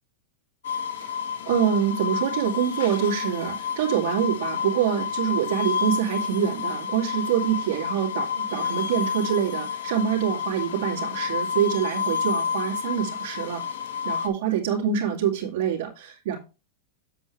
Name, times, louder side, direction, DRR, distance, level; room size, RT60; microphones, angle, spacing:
sound 1, 0.6-14.3, left 7 dB, 75° left, 1.5 m, -30 dB
voice 1, 1.5-13.6 14.0-16.4, right 9 dB, 65° right, -2 dB, 2.3 m, -25 dB
7.7 x 7.5 x 3.2 m, 0.30 s
hypercardioid pair, 115°, 0 cm